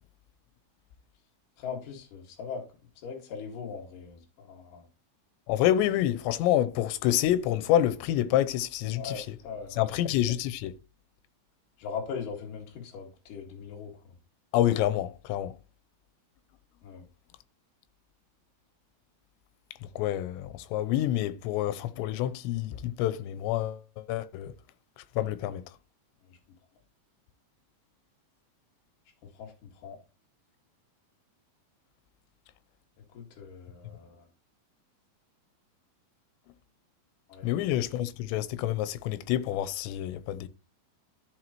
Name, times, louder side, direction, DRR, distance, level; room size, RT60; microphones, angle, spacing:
voice 1, 1.6-2.6 3.0-4.8 8.9-9.9 11.8-14.2 16.8-17.1 26.3-26.4 29.3-30.0 33.1-34.3 37.3-37.5, left 6 dB, 55° left, 3.3 m, -40 dB
voice 2, 5.5-9.2 9.8-10.8 14.5-15.6 20.0-24.5 25.2-25.7 37.4-40.5, left 12 dB, 90° left, 3.0 m, -28 dB
14.0 x 5.6 x 3.0 m
omnidirectional pair, 4.9 m